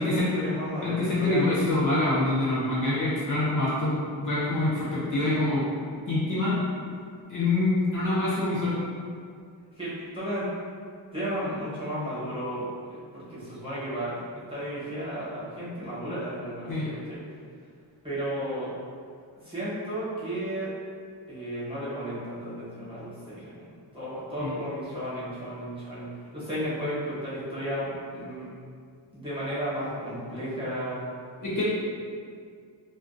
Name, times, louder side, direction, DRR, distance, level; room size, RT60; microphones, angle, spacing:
voice 1, 0.0-1.4 5.3-5.5 9.8-10.5 11.1-14.2 14.5-17.2 18.0-18.7 19.4-20.7 21.3-26.1 26.3-28.5 29.1-31.0, equal, 10° right, -11 dB, 1.0 m, -33 dB
voice 2, 0.8-3.9 4.2-5.6 6.1-6.6 7.3-8.8 16.7-16.9 24.4-24.5 31.4-31.6, left 2 dB, 40° left, -9 dB, 0.6 m, -25 dB
2.4 x 2.2 x 2.5 m, 2.2 s
wide cardioid pair, 95°, 48 cm